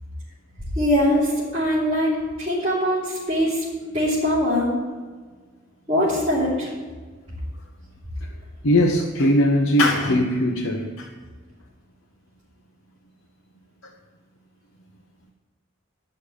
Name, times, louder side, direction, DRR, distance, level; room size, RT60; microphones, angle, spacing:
voice 1, 0.8-2.1 2.4-3.6 3.9-4.7 5.9-6.7, equal, 30° right, -13 dB, 3.6 m, -22 dB
voice 2, 8.6-11.1, left 1 dB, 80° left, 1 dB, 0.9 m, -20 dB
12.0 x 6.5 x 8.6 m, 1.5 s
head